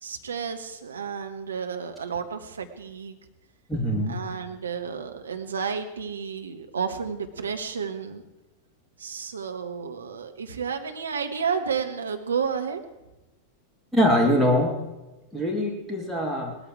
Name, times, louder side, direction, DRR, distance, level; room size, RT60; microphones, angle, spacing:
voice 1, 0.0-3.2 4.1-8.2 9.0-12.8, right 6 dB, 70° right, 6 dB, 1.5 m, -31 dB
voice 2, 3.7-4.2 13.9-14.7 15.3-16.6, equal, ahead, -1 dB, 2.7 m, -23 dB
18.5 x 13.5 x 4.8 m, 1.0 s
figure-of-eight pair, 90°, 0 cm